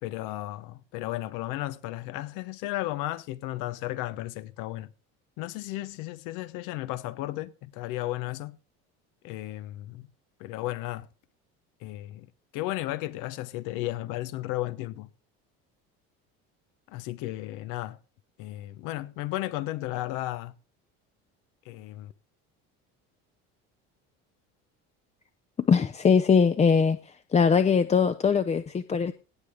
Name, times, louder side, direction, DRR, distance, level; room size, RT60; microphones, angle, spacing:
voice 1, 0.0-4.9 5.4-8.5 9.2-10.1 10.4-11.1 11.8-12.3 12.5-15.1 16.9-18.0 18.4-20.5 21.7-22.1, left 16 dB, 80° left, 1.1 m, -34 dB
voice 2, 25.7-27.0 27.3-29.1, left 6 dB, 20° left, 0.6 m, -21 dB
18.0 x 6.9 x 3.6 m
cardioid pair, 115°, 31 cm